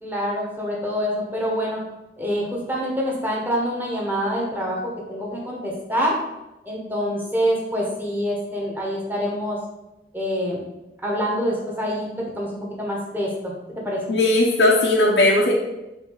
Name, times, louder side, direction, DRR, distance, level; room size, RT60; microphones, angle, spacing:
voice 1, 0.0-1.8 2.2-6.2 6.6-9.6 10.1-10.6 11.0-14.0, equal, 10° right, -3 dB, 1.5 m, -26 dB
voice 2, 14.1-15.5, left 2 dB, 90° left, -4 dB, 1.0 m, -17 dB
7.0 x 2.9 x 5.8 m, 0.95 s
head